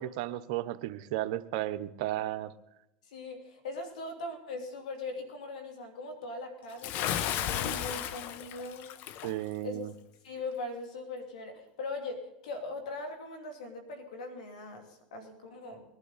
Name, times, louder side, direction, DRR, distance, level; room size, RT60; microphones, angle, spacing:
voice 1, 0.0-2.5 9.2-9.9, right 14 dB, 70° right, 11 dB, 0.8 m, -34 dB
voice 2, 3.1-8.9 9.6-9.9 10.2-15.8, left 2 dB, 80° left, 5 dB, 2.7 m, -40 dB
Bathtub (filling or washing) / Splash splatter, 6.8-9.3, left 10 dB, 55° left, 0.9 m, -34 dB
20.5 x 11.5 x 4.1 m, 0.87 s
hypercardioid pair, 100°, 4 cm